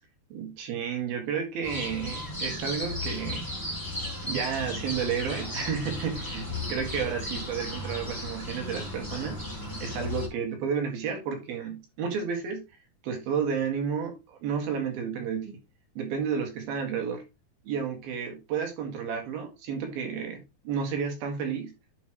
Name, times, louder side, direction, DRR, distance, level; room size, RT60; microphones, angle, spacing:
voice 1, 0.3-3.4 4.2-9.4 9.8-12.6 13.0-15.5 16.0-17.2 17.7-20.4 20.7-21.7, right 7 dB, 80° right, 3.6 m, -31 dB
sound 1, 1.6-10.3, left 1 dB, 10° left, 1.2 m, -35 dB
10.5 x 5.0 x 3.1 m
omnidirectional pair, 4.4 m